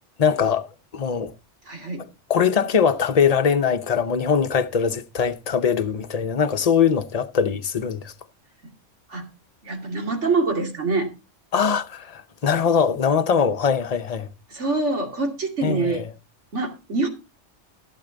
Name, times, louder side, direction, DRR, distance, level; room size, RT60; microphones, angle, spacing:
voice 1, 0.2-1.3 2.3-8.1 11.5-14.3 15.6-16.1, left 6 dB, 40° left, 0.7 m, -22 dB
voice 2, 1.7-2.1 9.1-9.3 9.6-11.1 14.5-16.0 16.5-17.1, right 3 dB, 70° right, 2.9 m, -25 dB
15.5 x 7.5 x 3.9 m
omnidirectional pair, 1.2 m